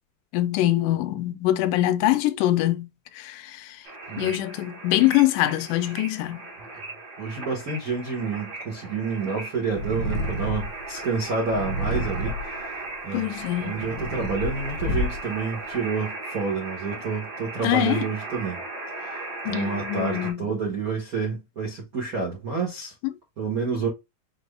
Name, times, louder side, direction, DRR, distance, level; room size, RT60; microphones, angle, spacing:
voice 1, 0.3-2.9 3.2-3.8 4.2-6.4 13.1-13.8 17.6-18.0 19.5-20.5, left 14 dB, 85° left, 2.1 m, -23 dB
sound 1, 3.8-20.3, right 2 dB, 45° right, 1.4 m, -37 dB
voice 2, 7.2-12.7 13.0-13.3 13.6-18.6 19.0-22.9 23.4-23.9, right 4 dB, 75° right, 0.8 m, -29 dB
Purr, 9.7-10.8 11.5-12.6 13.3-15.4, equal, 65° left, 1.1 m, -29 dB
6.0 x 2.2 x 3.3 m
omnidirectional pair, 3.7 m